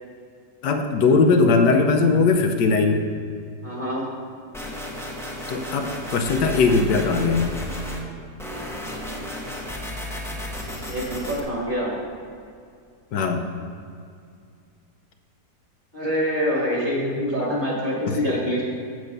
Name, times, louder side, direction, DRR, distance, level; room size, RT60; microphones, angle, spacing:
voice 1, 0.6-3.0 5.5-7.5 13.1-13.4 18.1-18.2, left 4 dB, 80° left, 5 dB, 1.3 m, -19 dB
voice 2, 3.6-4.1 10.9-11.9 15.9-18.6, equal, 30° right, -4 dB, 2.0 m, -25 dB
sound 1, 4.5-8.0 8.4-11.4, left 1 dB, 5° left, 0.6 m, -33 dB
7.8 x 7.3 x 5.2 m, 2.3 s
omnidirectional pair, 1.8 m